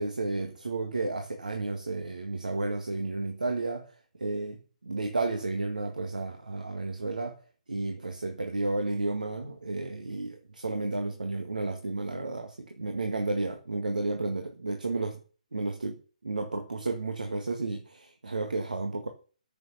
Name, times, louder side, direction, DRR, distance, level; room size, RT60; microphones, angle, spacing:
voice 1, 0.0-3.9 4.2-7.4 7.7-15.2 15.5-19.1, right 2 dB, 75° right, 1.7 m, -32 dB
9.0 x 6.5 x 7.1 m
figure-of-eight pair, 135°, 4 cm